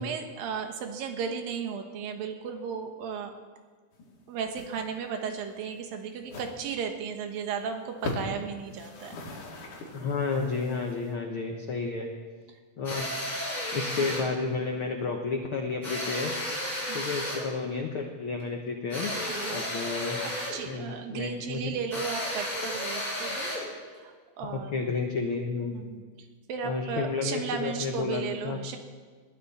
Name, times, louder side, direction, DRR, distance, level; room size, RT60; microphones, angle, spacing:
voice 1, 0.0-3.3 4.3-9.2 16.9-17.1 19.3-19.7 20.2-23.5 24.0-24.7 25.7-26.0 26.5-28.8, right 6 dB, 75° right, 5 dB, 2.9 m, -35 dB
sound 1, 3.9-4.2 4.5-4.8 5.0-5.2 5.6-5.7 6.2-6.6 7.0-7.1 7.4-7.5 7.9-8.4 8.7-11.1, left 3 dB, 60° left, 3.7 m, -39 dB
voice 2, 9.9-12.1 12.8-13.0 13.7-16.3 16.9-19.1 19.5-20.2 20.6-21.8 24.4-25.8 26.6-28.6, left 4 dB, 80° left, 2 dB, 1.2 m, -31 dB
sound 2, 12.8-14.3 15.8-17.5 18.9-20.6 21.9-23.7, left 1 dB, 10° left, 5.8 m, -33 dB
21.5 x 14.0 x 4.3 m, 1.5 s
omnidirectional pair, 4.2 m